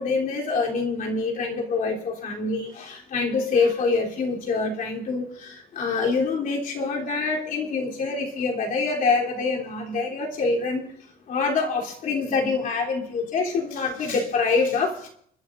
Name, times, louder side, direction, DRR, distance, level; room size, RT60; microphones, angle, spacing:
voice 1, 0.0-10.8 11.3-15.1, left 4 dB, 55° left, -2 dB, 3.5 m, -25 dB
29.5 x 11.0 x 2.7 m, 0.65 s
cardioid pair, 110°, 17 cm